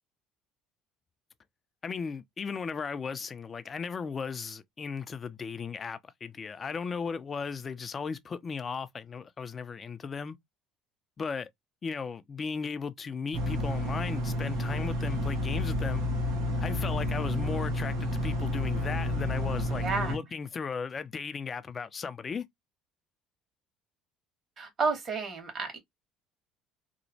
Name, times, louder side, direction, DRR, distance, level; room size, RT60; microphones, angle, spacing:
voice 1, 1.8-10.4 11.2-11.5 11.8-16.0 16.6-22.5, left 5 dB, 35° left, 0.4 m, -36 dB
sound 1, 13.3-20.2, left 1 dB, 80° right, 1.0 m, -30 dB
voice 2, 19.7-20.2 24.6-25.8, right 4 dB, 40° right, 1.5 m, -31 dB
3.0 x 2.1 x 2.6 m
supercardioid pair, 85°, 0 cm